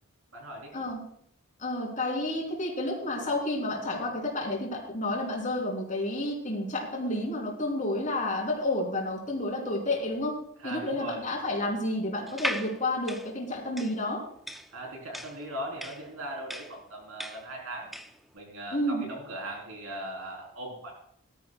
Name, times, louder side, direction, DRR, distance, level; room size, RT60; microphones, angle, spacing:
voice 1, 0.3-0.7 10.6-11.2 14.7-17.9 18.3-20.9, right 1 dB, 70° right, -1 dB, 3.8 m, -39 dB
voice 2, 1.6-10.3 10.6-14.2 18.7-19.0, left 1 dB, 35° left, -1 dB, 3.6 m, -30 dB
sound 1, 12.3-18.2, equal, ahead, 0.5 m, -38 dB
20.0 x 12.5 x 2.4 m, 0.67 s
head